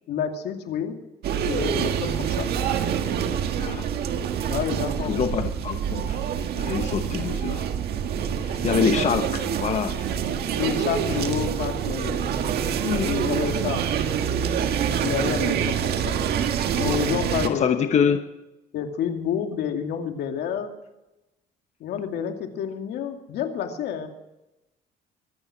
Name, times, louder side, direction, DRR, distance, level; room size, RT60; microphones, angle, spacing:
voice 1, 0.1-1.0 1.4-2.5 4.5-5.5 10.6-12.3 13.0-13.8 15.0-16.2 16.8-18.0 18.7-20.7 21.8-24.1, left 8 dB, 75° left, 4 dB, 2.5 m, -29 dB
sound 1, 1.2-17.5, right 8 dB, 70° right, 1.7 m, -26 dB
voice 2, 3.6-3.9 5.0-6.2 6.6-7.7 8.4-10.1 12.8-13.1 17.4-18.2, left 7 dB, 45° left, 7 dB, 1.0 m, -25 dB
23.5 x 9.6 x 6.1 m, 0.96 s
cardioid pair, 110°, 17 cm